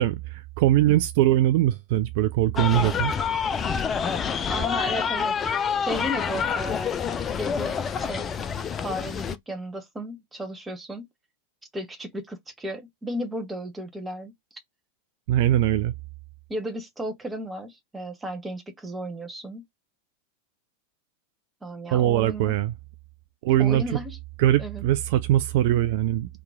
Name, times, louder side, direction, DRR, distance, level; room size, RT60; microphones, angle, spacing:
voice 1, 0.0-3.1 15.3-15.9 21.9-22.7 23.4-23.8 24.4-26.4, right 13 dB, 50° right, 0.3 m, -22 dB
sound 1, 2.6-9.4, left 6 dB, 20° left, 0.4 m, -27 dB
voice 2, 4.5-5.3 5.8-7.1 7.4-8.2 8.8-11.1 11.7-14.3 16.5-19.6 21.6-22.5 23.6-24.2 24.6-24.8, equal, 10° right, 0.7 m, -34 dB
2.9 x 2.4 x 3.4 m
figure-of-eight pair, 90°, 0 cm